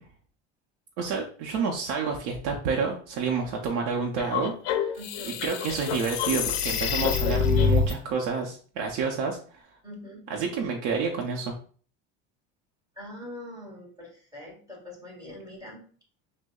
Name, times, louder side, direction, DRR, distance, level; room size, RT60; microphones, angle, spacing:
voice 1, 1.0-4.5 4.8-5.0 5.3-9.7 10.3-11.5, right 5 dB, 85° right, 1 dB, 0.7 m, -29 dB
sound 1, 4.2-7.9, left 6 dB, 55° left, 0.5 m, -26 dB
voice 2, 5.0-5.4 9.8-10.3 13.0-15.8, left 1 dB, 10° right, -4 dB, 1.9 m, -43 dB
6.2 x 2.1 x 2.3 m, 0.44 s
cardioid pair, 150°, 32 cm